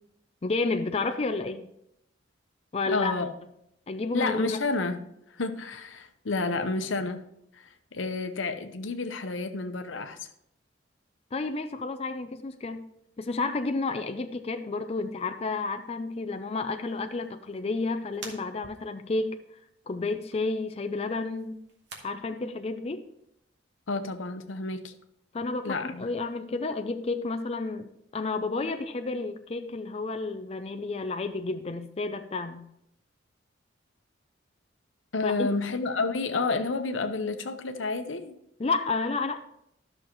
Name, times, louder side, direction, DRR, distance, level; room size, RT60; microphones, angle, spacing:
voice 1, 0.4-1.7 2.7-3.1 3.9-4.6 11.3-12.9 13.2-19.4 19.9-21.6 22.0-23.1 25.3-32.6 35.2-35.5 38.6-39.4, left 3 dB, 30° left, 7 dB, 0.4 m, -31 dB
voice 2, 2.9-3.3 4.1-7.3 7.5-10.3 23.9-24.9 25.6-26.1 35.1-38.4, left 3 dB, 90° left, 8 dB, 0.8 m, -30 dB
sound 1, 15.0-22.0, right 3 dB, 65° right, 1.8 m, -52 dB
13.0 x 6.4 x 3.0 m, 0.76 s
head